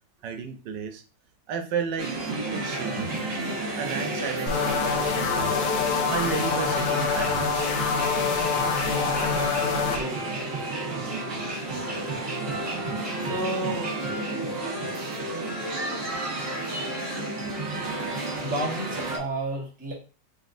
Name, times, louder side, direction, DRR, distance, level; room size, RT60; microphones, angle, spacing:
voice 1, 0.2-1.0 1.5-3.1 3.8-5.5 6.1-7.5, right 6 dB, 85° right, 8 dB, 1.3 m, -33 dB
sound 1, 2.0-19.2, right 2 dB, 50° right, 1.6 m, -31 dB
sound 2, 4.5-10.0, left 6 dB, 70° left, 1.1 m, -26 dB
voice 2, 9.9-10.2 13.2-13.9 18.4-19.9, right 1 dB, 5° right, -2 dB, 0.8 m, -31 dB
4.1 x 3.6 x 2.5 m, 0.36 s
omnidirectional pair, 1.9 m